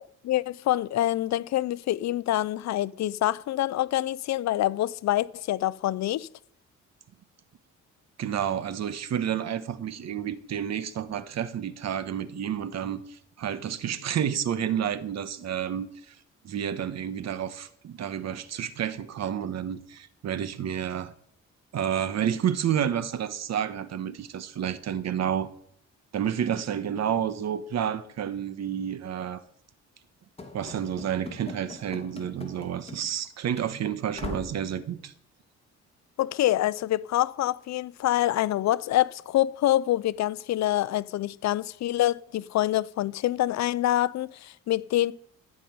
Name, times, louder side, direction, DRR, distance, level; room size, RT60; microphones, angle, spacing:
voice 1, 0.2-6.3 36.2-45.1, left 14 dB, 65° left, 0.6 m, -26 dB
voice 2, 8.2-16.1 16.4-21.1 21.7-25.5 26.1-29.4 30.5-35.1, right 9 dB, 60° right, 1.2 m, -30 dB
Run / Slam, 30.4-33.3 33.5-33.7 34.1-34.6, left 3 dB, 20° left, 2.2 m, -41 dB
13.5 x 5.5 x 9.4 m
cardioid pair, 90°, 30 cm